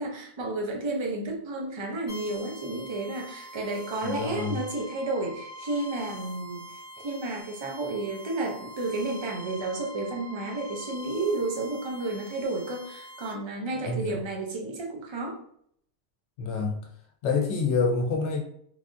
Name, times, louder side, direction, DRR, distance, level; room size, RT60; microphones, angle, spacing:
voice 1, 0.0-6.7 7.0-15.4 17.3-17.4, right 2 dB, 40° right, 0 dB, 0.4 m, -32 dB
sound 1, 2.1-13.3, equal, 85° right, 1.7 m, -44 dB
voice 2, 4.0-4.6 13.7-14.2 16.4-16.8 17.2-18.4, left 4 dB, 80° left, 2 dB, 0.9 m, -27 dB
3.2 x 2.4 x 2.6 m, 0.66 s
omnidirectional pair, 1.2 m